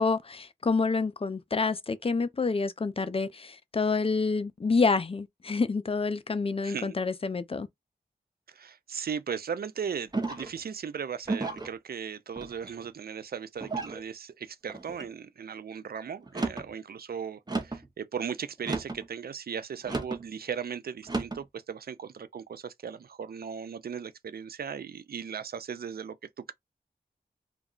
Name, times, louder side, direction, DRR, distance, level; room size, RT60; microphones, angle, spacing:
voice 1, 0.0-7.7, left 4 dB, 35° left, 0.4 m, -28 dB
voice 2, 6.6-6.9 8.5-26.5, right 7 dB, 60° right, 0.4 m, -37 dB
sound 1, 10.1-10.6 11.2-11.7 12.4-12.9 13.6-14.0 14.7-15.1 16.2-16.7 17.5-17.9 18.6-19.1 19.8-20.2 21.0-21.4, right 3 dB, 25° right, 0.7 m, -33 dB
2.3 x 2.1 x 3.6 m
cardioid pair, 50°, 17 cm